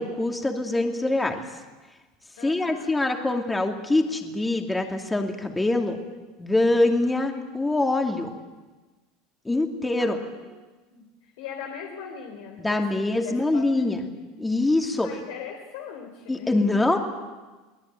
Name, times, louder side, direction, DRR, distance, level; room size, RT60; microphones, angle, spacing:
voice 1, 0.0-1.4 2.4-6.0 6.4-8.3 9.4-10.2 12.6-14.0 14.4-15.1 16.3-17.0, left 2 dB, 10° left, 4 dB, 2.6 m, -24 dB
voice 2, 2.4-2.9 10.0-10.6 10.9-13.8 15.0-17.0, left 7 dB, 80° left, 2 dB, 3.6 m, -40 dB
23.5 x 19.0 x 9.2 m, 1.2 s
supercardioid pair, 125°, 0 cm